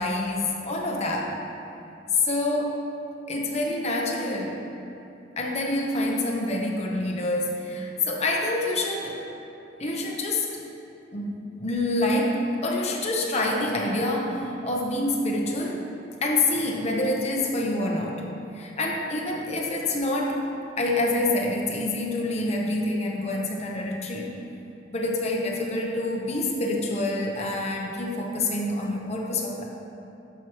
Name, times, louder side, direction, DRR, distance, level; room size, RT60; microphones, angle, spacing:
voice 1, 0.0-1.3 2.1-2.8 3.3-4.6 5.4-9.2 9.8-10.5 11.1-15.9 16.2-18.2 18.5-20.4 20.8-24.3 24.9-29.6, left 2 dB, 35° left, -1 dB, 1.0 m, -27 dB
12.0 x 6.2 x 3.1 m, 2.9 s
head